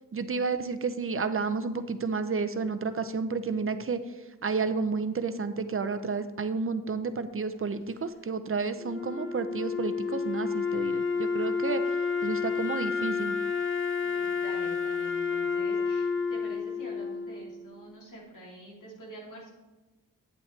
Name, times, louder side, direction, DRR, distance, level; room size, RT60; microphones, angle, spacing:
voice 1, 0.1-4.0 4.4-11.8 12.2-13.4, right 4 dB, 45° right, 10 dB, 0.7 m, -31 dB
Wind instrument woodwind instrument, 8.8-17.9, left 5 dB, 40° left, 1.0 m, -30 dB
voice 2, 14.0-19.5, equal, 80° left, -3 dB, 2.9 m, -47 dB
9.0 x 8.5 x 3.3 m, 1.2 s
wide cardioid pair, 75°, 31 cm